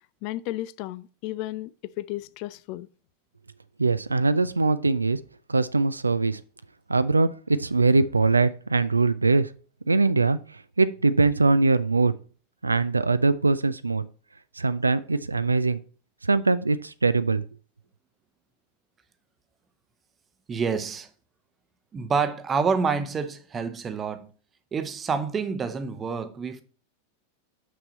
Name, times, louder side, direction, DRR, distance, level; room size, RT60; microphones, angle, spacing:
voice 1, 0.2-2.9, left 16 dB, 45° left, 0.3 m, -34 dB
voice 2, 3.8-5.2 5.5-6.4 6.9-9.5 9.9-10.4 10.8-12.1 12.6-14.1 14.6-15.8 16.2-17.4, right 3 dB, 80° right, 0.3 m, -22 dB
voice 3, 20.5-21.1 21.9-24.3 24.7-26.6, right 5 dB, 20° right, 0.8 m, -27 dB
6.2 x 5.9 x 4.1 m
figure-of-eight pair, 90°, 0 cm